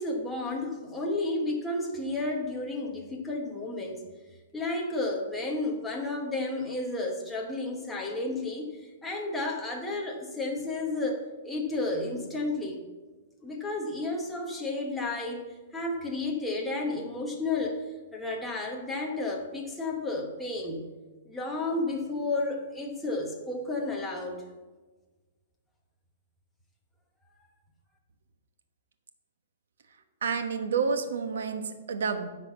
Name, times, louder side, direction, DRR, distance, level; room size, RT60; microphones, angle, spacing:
voice 1, 0.0-4.0 4.5-12.8 13.4-15.4 15.7-17.8 18.1-20.9 21.2-24.4, left 2 dB, 5° left, -1 dB, 1.0 m, -32 dB
voice 2, 30.2-32.3, right 5 dB, 80° right, 8 dB, 1.0 m, -29 dB
10.5 x 4.1 x 7.3 m, 1.3 s
hypercardioid pair, 170°, 0 cm